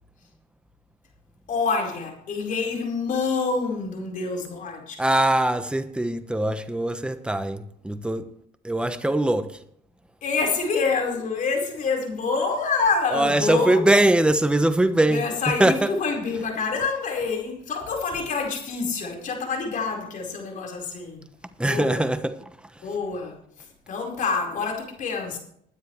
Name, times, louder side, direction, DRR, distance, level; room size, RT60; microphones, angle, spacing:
voice 1, 1.5-5.0 10.2-14.0 15.1-21.2 21.6-22.1 22.8-25.4, left 4 dB, 50° left, 4.5 m, -27 dB
voice 2, 5.0-8.3 8.6-9.5 13.1-15.2 15.6-15.9 21.6-22.3, right 1 dB, 5° right, 1.1 m, -21 dB
21.0 x 9.7 x 3.2 m
cardioid pair, 110°, 17 cm